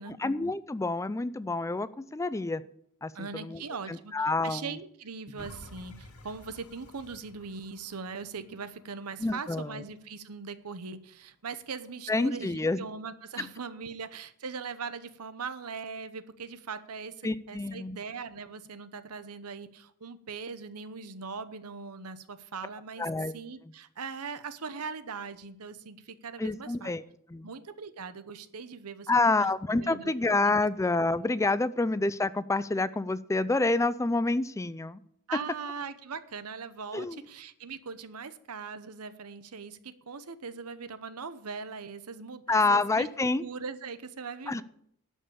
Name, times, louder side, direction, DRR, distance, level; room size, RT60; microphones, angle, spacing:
voice 1, 0.1-2.6 3.0-3.6 3.9-4.7 9.2-9.8 12.1-12.8 17.2-18.0 23.0-23.3 26.4-27.0 27.3-27.5 29.1-35.0 36.9-37.3 42.5-43.4 44.5-44.6, left 3 dB, 15° left, 16 dB, 0.4 m, -28 dB
voice 2, 3.1-23.1 23.3-26.9 27.4-29.1 29.4-30.1 30.4-30.5 35.3-43.1 43.4-44.6, right 5 dB, 85° right, 13 dB, 0.9 m, -40 dB
sound 1, 5.4-10.4 10.9-11.0, left 1 dB, 90° left, 2.1 m, -52 dB
12.0 x 5.5 x 8.5 m, 0.69 s
head